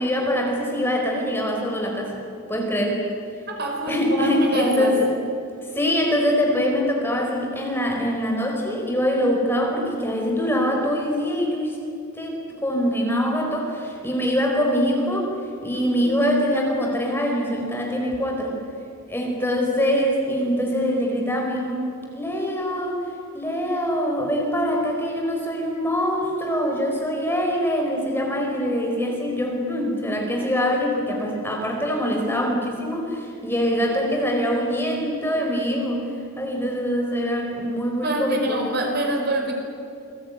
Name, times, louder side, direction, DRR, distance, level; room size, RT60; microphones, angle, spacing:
voice 1, 0.0-2.2 2.5-3.0 3.9-5.1 5.7-11.8 12.1-15.3 15.6-18.6 19.1-23.0 23.3-38.6, equal, 10° left, 0 dB, 4.6 m, -24 dB
voice 2, 3.5-5.0 15.7-16.1 38.0-39.5, right 1 dB, 50° right, 2 dB, 4.8 m, -26 dB
28.0 x 20.5 x 9.6 m, 2.6 s
head